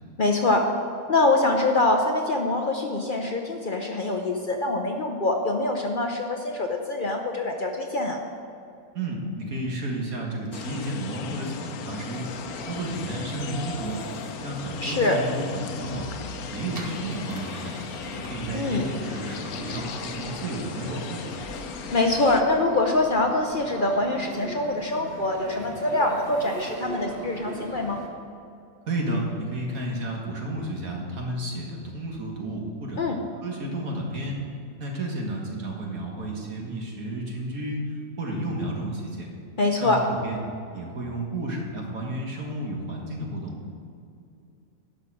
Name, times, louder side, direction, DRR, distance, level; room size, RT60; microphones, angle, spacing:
voice 1, 0.2-0.7 1.1-8.2 14.8-15.2 18.5-18.9 21.9-28.0 33.0-33.2 39.6-40.0, left 2 dB, 45° left, 2 dB, 0.7 m, -24 dB
voice 2, 8.9-12.3 12.7-14.0 14.4-16.1 16.5-17.7 18.3-21.3 28.9-33.0 33.4-34.4 34.8-37.8 38.2-39.3 39.8-40.4 40.7-43.5, right 1 dB, 75° right, -1 dB, 2.2 m, -32 dB
sound 1, 10.5-22.4, left 7 dB, 85° left, 1.1 m, -37 dB
sound 2, 12.1-28.1, right 1 dB, 45° right, 1.4 m, -40 dB
11.5 x 5.8 x 6.2 m, 2.6 s
omnidirectional pair, 1.5 m